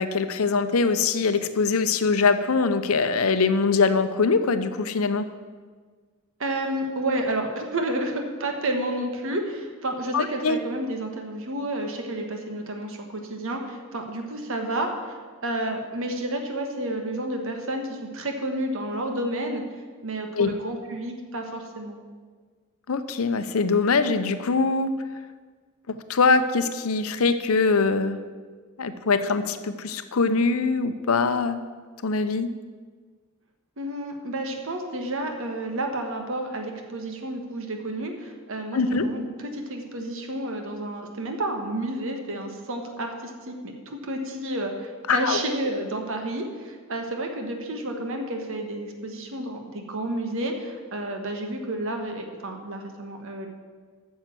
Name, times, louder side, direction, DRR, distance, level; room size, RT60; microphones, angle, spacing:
voice 1, 0.0-5.3 10.1-10.6 20.4-20.5 22.9-24.9 25.9-28.2 28.8-31.6 32.0-32.5 38.7-39.1 45.1-45.4, left 4 dB, 75° left, 11 dB, 0.7 m, -23 dB
voice 2, 6.4-19.6 20.0-22.0 33.8-53.5, right 1 dB, 65° right, 4 dB, 1.4 m, -30 dB
9.1 x 6.5 x 7.5 m, 1.5 s
head